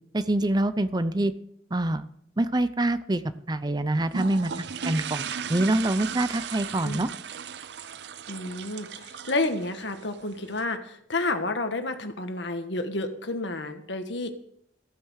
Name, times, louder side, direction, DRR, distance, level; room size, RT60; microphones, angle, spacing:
voice 1, 0.1-1.3 1.7-2.0 2.4-3.2 3.5-7.1, right 1 dB, 20° right, 13 dB, 0.6 m, -25 dB
sound 1, 4.1-10.6, right 7 dB, 65° right, 0.6 m, -37 dB
voice 2, 8.3-14.3, left 2 dB, 75° left, 7 dB, 1.6 m, -30 dB
15.0 x 9.2 x 6.4 m, 0.71 s
head